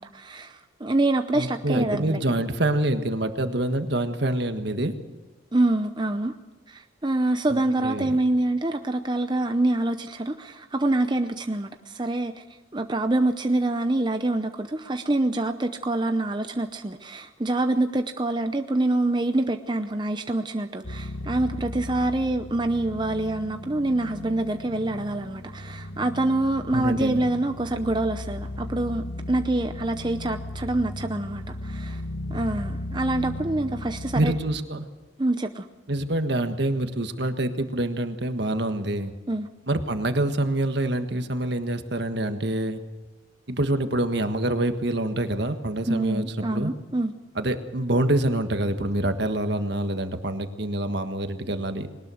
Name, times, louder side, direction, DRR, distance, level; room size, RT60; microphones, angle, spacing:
voice 1, 0.0-2.2 5.5-6.3 6.7-12.4 12.7-32.0 32.3-34.3 35.2-35.6 39.3-39.5 45.9-47.1, right 2 dB, 25° right, 7 dB, 0.7 m, -26 dB
voice 2, 1.3-4.9 7.5-8.2 26.7-27.2 34.1-34.9 35.9-39.1 39.7-42.8 43.5-46.7 47.3-51.9, right 1 dB, 60° right, 8 dB, 1.6 m, -26 dB
sound 1, 20.8-34.4, left 1 dB, 60° left, 1.2 m, -36 dB
21.0 x 19.5 x 6.4 m, 1.3 s
head